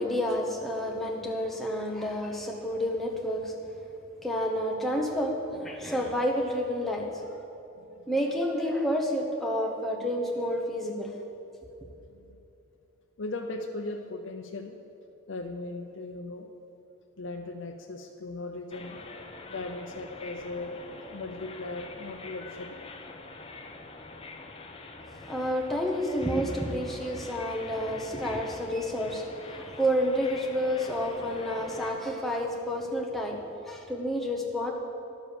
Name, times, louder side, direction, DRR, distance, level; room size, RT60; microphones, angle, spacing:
voice 1, 0.0-3.5 4.2-7.2 8.1-11.1 25.3-33.4 33.6-34.7, equal, ahead, -1 dB, 1.0 m, -29 dB
voice 2, 7.8-8.1 12.2-12.4 13.2-14.8 15.3-16.5 17.2-19.0 19.5-22.8, left 2 dB, 60° left, 2 dB, 0.6 m, -38 dB
sound 1, 18.7-31.9, left 3 dB, 25° left, 0.7 m, -45 dB
11.0 x 7.1 x 6.8 m, 2.9 s
head